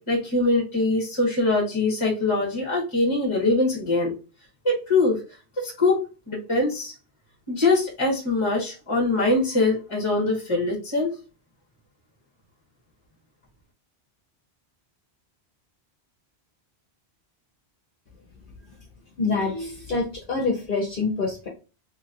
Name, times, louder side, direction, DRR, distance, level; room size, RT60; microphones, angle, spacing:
voice 1, 0.0-4.1 4.6-5.2 5.6-6.0 6.3-6.9 7.5-11.1, left 2 dB, 30° left, -3 dB, 1.1 m, -23 dB
voice 2, 19.2-21.5, left 3 dB, 55° left, -1 dB, 1.0 m, -26 dB
3.2 x 2.9 x 2.5 m, 0.33 s
omnidirectional pair, 1.1 m